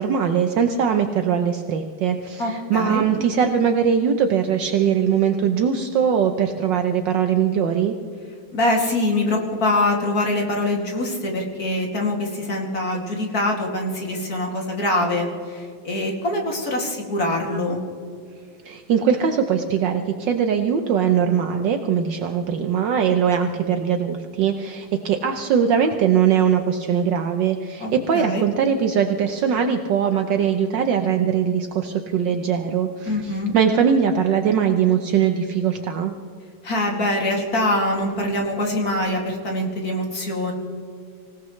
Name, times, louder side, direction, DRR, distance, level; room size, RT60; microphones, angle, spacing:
voice 1, 0.0-7.9 18.6-36.1, right 7 dB, 70° right, 5 dB, 1.4 m, -21 dB
voice 2, 2.4-3.1 8.5-17.8 27.8-28.4 33.1-33.5 36.6-40.5, left 1 dB, 45° left, 0 dB, 2.8 m, -24 dB
26.0 x 17.0 x 3.2 m, 2.2 s
omnidirectional pair, 2.2 m